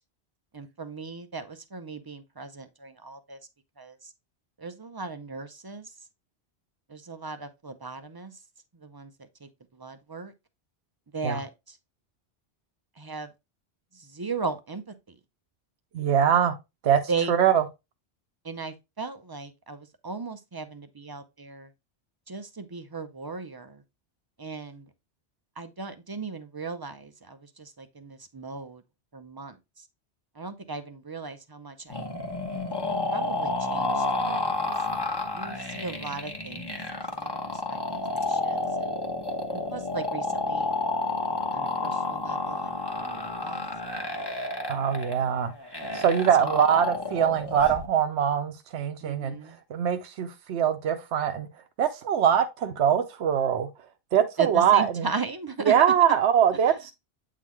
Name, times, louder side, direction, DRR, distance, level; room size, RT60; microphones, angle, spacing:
voice 1, 0.5-3.4 3.8-4.1 4.6-5.9 6.9-8.3 8.8-9.1 9.4-10.3 11.1-11.8 13.0-13.3 13.9-15.1 17.1-17.3 18.4-21.7 22.3-23.8 24.4-24.9 25.6-28.8 29.1-29.8 30.4-32.1 33.1-34.7 35.3-39.0 39.5-40.7 41.5-43.6 46.4-46.7 49.0-49.6 54.4-55.7, right 4 dB, 30° right, 0.4 m, -37 dB
voice 2, 15.9-16.5 16.8-17.0 17.3-17.6 44.7-45.5 45.9-49.3 49.7-51.5 51.8-53.7 54.1-55.1 55.7-56.9, right 9 dB, 75° right, 1.0 m, -23 dB
sound 1, 31.9-47.9, left 2 dB, 20° left, 1.1 m, -30 dB
8.3 x 3.8 x 3.1 m
omnidirectional pair, 1.2 m